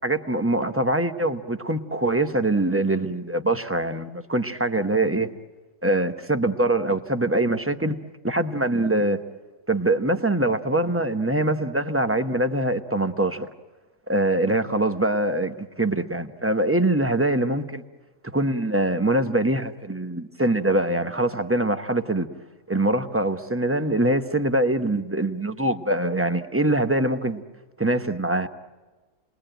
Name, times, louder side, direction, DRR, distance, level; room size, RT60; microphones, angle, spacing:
voice 1, 0.0-5.3 5.8-8.0 8.2-9.2 9.7-13.5 14.1-17.8 18.2-22.3 22.7-27.4 27.8-28.5, right 1 dB, 10° right, 8 dB, 0.8 m, -23 dB
29.5 x 20.5 x 9.0 m, 1.3 s
omnidirectional pair, 1.6 m